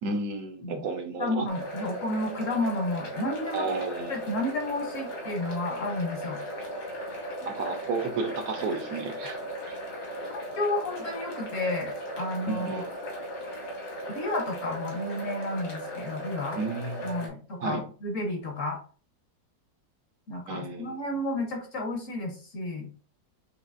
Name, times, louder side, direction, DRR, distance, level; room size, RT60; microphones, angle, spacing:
voice 1, 0.0-1.5 3.5-4.1 7.4-9.4 9.7-9.8 12.5-12.9 16.6-17.3 17.6-17.8 20.5-21.0, right 4 dB, 65° right, 6 dB, 0.9 m, -32 dB
voice 2, 1.2-3.6 4.1-6.4 10.2-11.9 12.2-12.8 14.1-16.6 17.0-18.8 20.3-22.9, left 1 dB, 55° left, 3 dB, 1.0 m, -31 dB
sound 1, 1.5-17.3, equal, 75° left, 2.2 m, -37 dB
6.5 x 2.9 x 2.5 m, 0.39 s
omnidirectional pair, 2.0 m